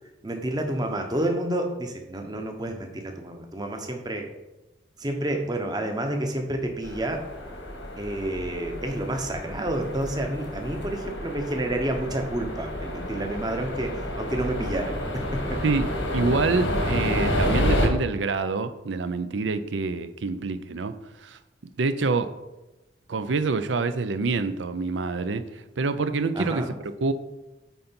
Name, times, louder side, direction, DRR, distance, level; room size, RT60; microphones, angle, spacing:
voice 1, 0.2-4.3 5.0-7.2 8.0-15.6 26.3-26.7, right 1 dB, 20° right, 4 dB, 0.8 m, -29 dB
sound 1, 6.8-17.9, left 1 dB, 90° left, 1.5 m, -29 dB
voice 2, 16.1-20.9 21.2-21.4 21.8-22.3 23.1-27.1, right 3 dB, 85° right, 11 dB, 0.6 m, -26 dB
9.0 x 3.9 x 4.4 m, 1.0 s
head